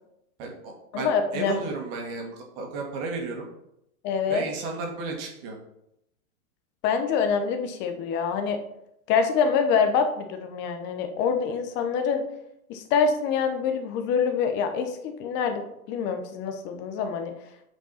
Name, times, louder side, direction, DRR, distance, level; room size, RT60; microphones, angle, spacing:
voice 1, 0.4-3.5 4.3-5.6, right 3 dB, 40° right, 1 dB, 2.1 m, -33 dB
voice 2, 0.9-1.6 4.0-4.5 6.8-8.6 9.1-12.2 12.7-17.3, left 6 dB, 25° left, 6 dB, 0.9 m, -25 dB
8.5 x 5.3 x 4.2 m, 0.80 s
hypercardioid pair, 150°, 44 cm